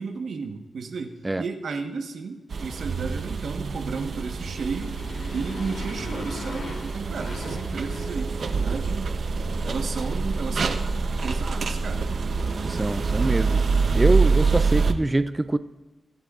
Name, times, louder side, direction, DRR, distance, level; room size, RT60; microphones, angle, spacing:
voice 1, 0.0-4.9 5.3-9.1 9.6-10.9 11.2-12.2, right 4 dB, 80° right, 4 dB, 1.2 m, -33 dB
sound 1, 2.5-14.9, right 4 dB, 65° right, 0.6 m, -26 dB
Motorcycle, 4.3-8.9, left 2 dB, 75° left, 2.8 m, -39 dB
voice 2, 12.6-13.6 13.9-15.6, right 2 dB, 20° right, 11 dB, 0.3 m, -24 dB
22.0 x 8.4 x 2.4 m, 1.2 s
wide cardioid pair, 95°, 0 cm